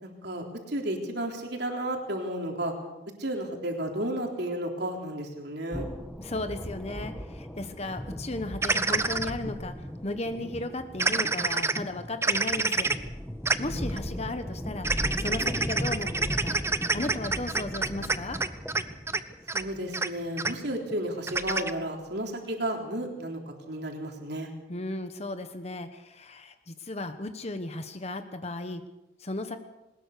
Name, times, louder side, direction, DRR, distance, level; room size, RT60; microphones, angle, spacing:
voice 1, 0.0-2.7 3.2-5.9 19.5-23.4 23.7-24.5, right 1 dB, 55° right, 2 dB, 3.8 m, -33 dB
sound 1, 5.7-21.9, equal, 5° left, 1.3 m, -38 dB
voice 2, 6.2-12.9 13.6-16.6 16.9-18.4 24.7-28.8 29.2-29.6, left 2 dB, 30° left, 8 dB, 1.1 m, -35 dB
sound 2, 8.6-9.3 11.0-11.8 12.2-13.0 13.5-13.6 13.9-14.0 14.8-18.8 19.1-19.2 19.5-19.6 19.9-20.1 20.4-20.5 21.3-21.7, right 3 dB, 15° right, 0.7 m, -27 dB
21.5 x 20.0 x 6.7 m, 1.0 s
head